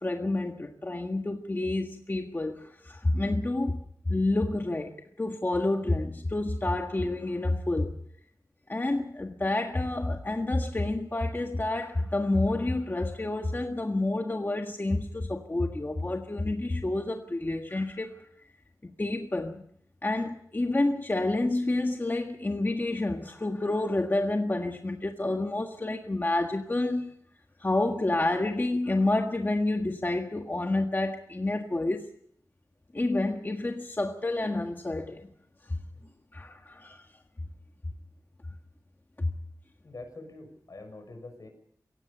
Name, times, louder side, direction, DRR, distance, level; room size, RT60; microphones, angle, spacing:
voice 1, 0.0-8.0 8.7-18.3 18.8-19.6 20.0-27.1 27.6-32.1 32.9-35.3 35.7-35.8 36.3-37.1 39.2-39.3, left 2 dB, 30° left, 1.6 m, -29 dB
voice 2, 39.8-41.5, left 2 dB, 70° left, 6.5 m, -45 dB
25.0 x 17.0 x 6.9 m
wide cardioid pair, 70°, 6 cm